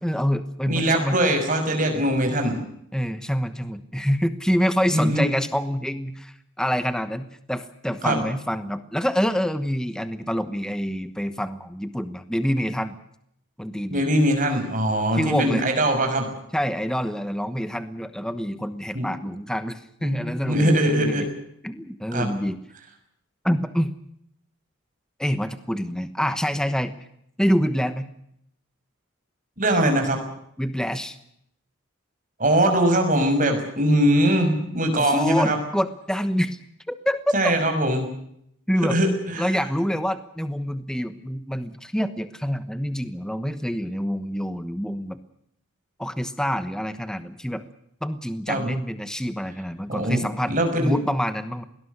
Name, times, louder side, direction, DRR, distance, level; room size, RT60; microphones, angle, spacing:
voice 1, 0.0-1.2 2.9-12.9 13.6-14.0 15.1-15.6 16.5-21.3 21.6-22.6 23.4-23.9 25.2-26.9 27.4-28.1 30.6-31.2 35.0-36.6 36.9-37.4 38.7-39.0 39.4-45.2 46.0-47.6 48.0-51.6, equal, 5° left, 11 dB, 1.1 m, -26 dB
voice 2, 0.7-2.6 4.9-5.2 8.0-8.2 13.9-16.3 18.9-19.2 20.0-21.3 22.1-22.3 29.6-30.2 32.4-35.6 37.3-38.1 38.8-39.5 48.5-48.7 49.9-50.2 50.4-51.0, right 1 dB, 40° right, 4 dB, 5.9 m, -21 dB
21.5 x 19.0 x 8.0 m, 0.72 s
head